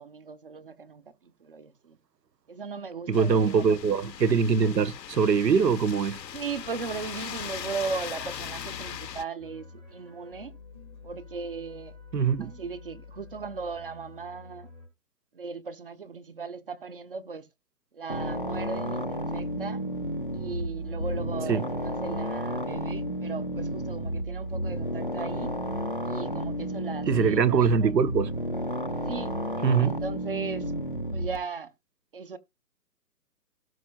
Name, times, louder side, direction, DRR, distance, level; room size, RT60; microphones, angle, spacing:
voice 1, 0.0-2.0 2.5-3.8 6.3-10.5 11.0-12.0 12.4-14.7 15.3-17.5 17.9-19.8 20.3-25.6 26.0-28.1 29.1-29.3 29.8-30.7 31.1-31.7 32.1-32.4, right 5 dB, 35° right, 0.8 m, -37 dB
sound 1, 3.1-9.2, left 9 dB, 90° left, 0.9 m, -39 dB
voice 2, 3.1-6.2 12.1-12.5 21.5-21.6 27.1-28.3 29.6-30.0, right 6 dB, 80° right, 1.2 m, -23 dB
sound 2, 9.4-14.9, left 4 dB, 10° right, 0.9 m, -48 dB
sound 3, 18.1-31.4, equal, 35° left, 0.4 m, -32 dB
17.5 x 6.3 x 2.3 m
hypercardioid pair, 170°, 49 cm